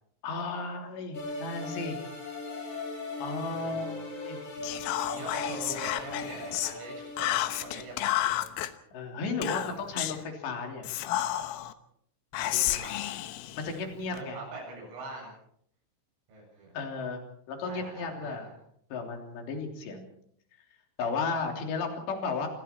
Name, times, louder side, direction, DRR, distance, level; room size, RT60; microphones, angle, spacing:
voice 1, 0.2-2.0 3.2-4.4 8.9-10.9 12.5-12.8 13.6-14.4 16.7-17.2 17.5-18.5 18.9-20.1 21.0-22.5, left 4 dB, 60° left, 3 dB, 5.2 m, -34 dB
sound 1, 1.1-8.1, left 2 dB, 40° left, 7.4 m, -39 dB
voice 2, 3.5-4.0 5.1-8.4 12.3-13.2 14.1-15.3 16.3-16.8 17.6-18.5, right 2 dB, 70° right, -3 dB, 10.0 m, -43 dB
Whispering, 4.6-6.8 7.2-8.7 9.4-10.2 10.8-11.7 12.3-14.2, left 14 dB, 90° left, 3.7 m, -31 dB
28.0 x 22.0 x 4.5 m, 0.69 s
omnidirectional pair, 5.9 m